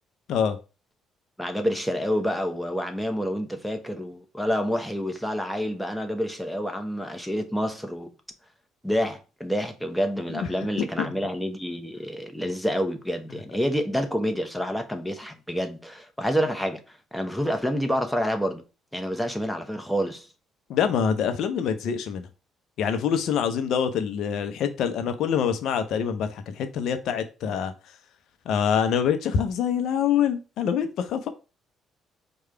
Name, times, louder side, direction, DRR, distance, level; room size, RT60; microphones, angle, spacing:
voice 1, 1.4-8.1 8.8-16.8 17.1-18.6 18.9-20.3, equal, 5° left, 0.9 m, -28 dB
voice 2, 10.8-11.1 20.7-22.3 22.8-27.7 28.5-31.3, left 7 dB, 60° left, 0.6 m, -25 dB
4.8 x 2.3 x 4.3 m
hypercardioid pair, 50°, 0 cm